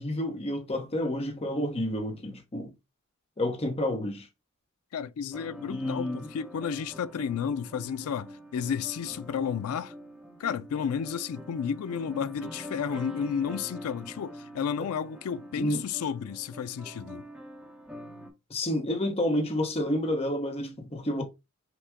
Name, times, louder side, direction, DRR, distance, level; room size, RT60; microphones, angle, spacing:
voice 1, 0.0-2.7 3.4-4.3 5.7-6.3 15.6-15.8 18.5-21.2, left 1 dB, 25° left, 0.8 m, -29 dB
voice 2, 4.9-9.9 10.4-17.3, left 7 dB, 80° left, 0.4 m, -32 dB
sound 1, 5.3-18.3, equal, 5° right, 0.9 m, -45 dB
5.9 x 2.2 x 3.6 m
head